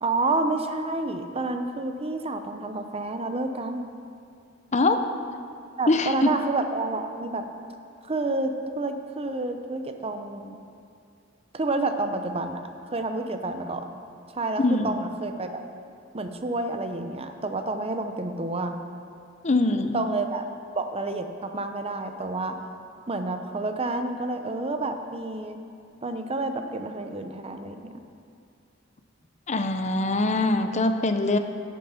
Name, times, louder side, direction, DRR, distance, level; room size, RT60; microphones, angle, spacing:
voice 1, 0.0-3.9 5.8-7.4 8.1-10.6 11.5-12.6 12.9-14.0 14.3-15.6 16.1-18.7 19.9-20.4 20.7-22.6 23.1-25.6 26.0-28.0, right 2 dB, 30° right, 6 dB, 0.7 m, -29 dB
voice 2, 5.9-6.4 14.6-15.1 19.4-20.0 29.5-31.4, left 2 dB, 35° left, 8 dB, 0.7 m, -23 dB
11.5 x 8.6 x 5.7 m, 2.5 s
head